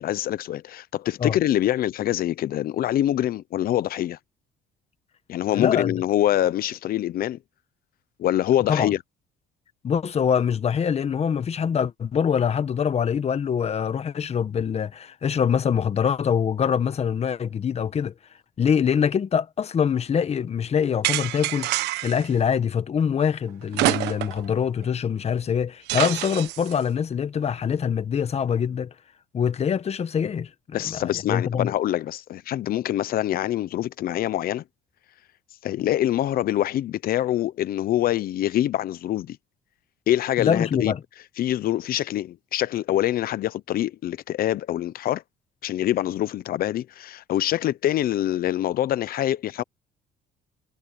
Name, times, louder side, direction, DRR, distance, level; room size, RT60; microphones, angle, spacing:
voice 1, 0.0-4.2 5.3-7.4 8.2-9.0 30.7-34.6 35.6-39.4 40.1-40.9 41.4-45.2 45.6-49.6, left 12 dB, 60° left, 0.9 m, -25 dB
voice 2, 5.5-6.0 8.7-8.9 9.8-18.1 18.6-21.7 22.0-28.9 29.3-31.7 40.4-41.0, left 7 dB, 40° left, 1.3 m, -24 dB
sound 1, 21.0-22.3 23.7-24.5 24.8-24.9 25.9-26.7, right 17 dB, 90° right, 1.2 m, -26 dB
cardioid pair, 110°, 17 cm